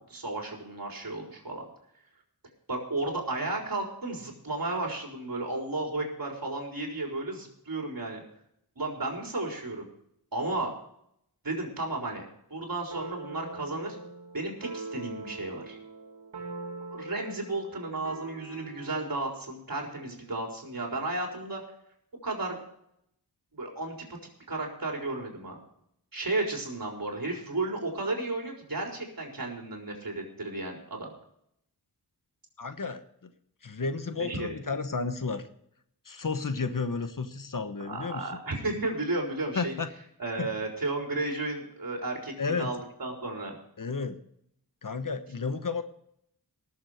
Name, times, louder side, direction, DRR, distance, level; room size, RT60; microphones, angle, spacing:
voice 1, 0.1-1.7 2.7-8.2 8.8-9.9 10.3-10.7 11.4-12.2 12.5-14.0 14.3-15.8 16.9-21.6 22.2-22.6 23.5-23.9 24.5-25.6 26.1-31.1 34.1-34.5 37.8-39.7 40.2-43.5, right 2 dB, 60° right, 0 dB, 4.2 m, -33 dB
sound 1, 12.9-19.1, right 3 dB, 90° right, 2.5 m, -42 dB
voice 2, 32.6-33.3 33.6-35.4 36.0-38.2 39.5-39.9 40.4-40.5 42.4-42.7 43.8-44.2 44.8-45.8, left 4 dB, 55° left, 9 dB, 1.2 m, -32 dB
19.0 x 7.4 x 4.9 m, 0.73 s
wide cardioid pair, 85°, 39 cm